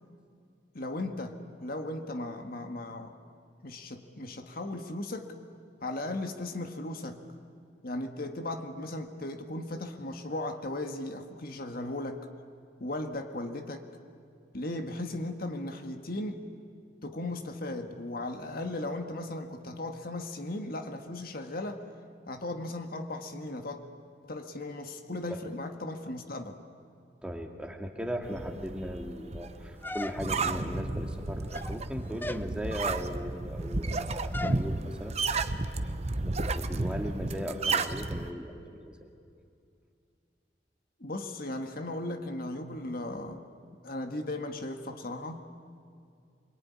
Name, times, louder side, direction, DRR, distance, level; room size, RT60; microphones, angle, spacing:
voice 1, 0.7-3.1 3.6-5.3 5.8-7.2 7.8-12.3 12.8-13.9 14.5-16.5 17.0-21.8 22.3-23.8 24.2-26.6 41.0-43.4 43.8-45.5, left 2 dB, 55° left, 6 dB, 1.7 m, -37 dB
voice 2, 27.2-35.2 36.3-39.1, equal, 5° right, 2 dB, 2.3 m, -38 dB
sound 1, 28.2-38.3, right 3 dB, 35° right, 1.0 m, -32 dB
sound 2, 29.8-30.6 31.4-31.8 32.2-32.5 34.3-34.7, left 2 dB, 10° left, 0.6 m, -37 dB
25.5 x 23.0 x 9.7 m, 2.4 s
head